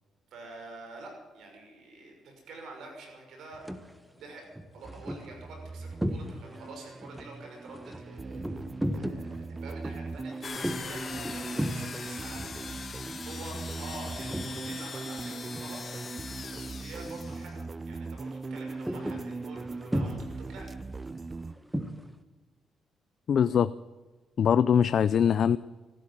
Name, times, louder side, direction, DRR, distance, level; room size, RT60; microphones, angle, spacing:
voice 1, 0.3-3.7 4.2-4.5 4.7-15.8 16.5-20.7, right 2 dB, 75° right, 2 dB, 6.0 m, -47 dB
sound 1, 3.5-3.9 4.4-6.7 7.0-14.9 15.2-16.3 16.6-16.8 17.2-17.6 17.9-22.1, equal, 5° right, 1.3 m, -37 dB
sound 2, 4.8-21.5, right 3 dB, 25° right, 0.4 m, -40 dB
sound 3, 10.4-17.6, left 5 dB, 40° left, 1.6 m, -41 dB
voice 2, 23.3-23.7 24.4-25.6, left 8 dB, 55° left, 15 dB, 0.4 m, -22 dB
14.5 x 12.5 x 7.6 m, 1.3 s
cardioid pair, 90°, 0 cm